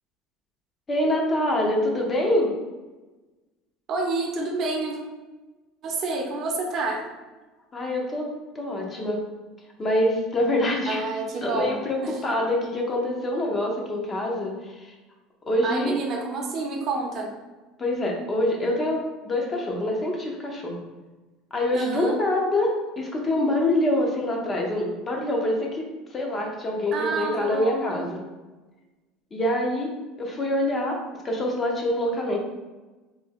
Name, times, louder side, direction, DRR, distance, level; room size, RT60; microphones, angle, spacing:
voice 1, 0.9-2.5 7.7-8.3 8.5-9.2 9.8-11.0 11.4-14.9 15.5-16.0 17.8-20.8 21.5-25.8 26.1-28.2 29.3-29.9 30.2-31.0 31.2-32.4, left 1 dB, 25° left, 0 dB, 0.7 m, -25 dB
voice 2, 3.9-5.0 5.8-7.1 10.9-12.2 15.6-17.3 21.7-22.2 26.9-28.1, right 3 dB, 40° right, 1 dB, 0.7 m, -29 dB
3.3 x 2.2 x 3.4 m, 1.2 s
supercardioid pair, 135°, 0 cm